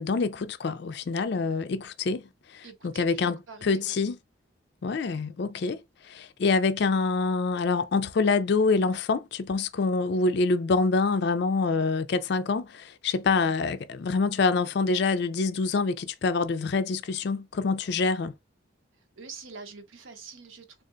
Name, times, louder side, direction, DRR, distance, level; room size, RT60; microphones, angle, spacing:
voice 1, 0.0-2.2 2.5-3.4 3.6-4.2 4.8-18.3, left 4 dB, 55° left, 0.4 m, -26 dB
voice 2, 2.6-4.0 19.2-20.8, right 4 dB, 75° right, 0.8 m, -45 dB
3.8 x 2.5 x 2.4 m
head